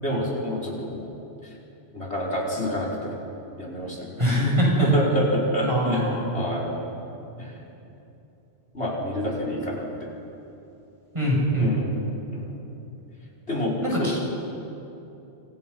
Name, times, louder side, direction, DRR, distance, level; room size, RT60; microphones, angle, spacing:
voice 1, 0.0-1.1 1.9-3.1 3.6-4.0 4.8-6.7 8.7-10.1 11.6-11.9 12.3-12.5 13.5-14.1, equal, 70° left, -2 dB, 5.6 m, -27 dB
voice 2, 4.2-4.9 5.7-6.3 11.1-11.7 13.8-14.2, equal, 25° right, -4 dB, 7.2 m, -23 dB
28.5 x 27.5 x 5.6 m, 2.9 s
omnidirectional pair, 1.2 m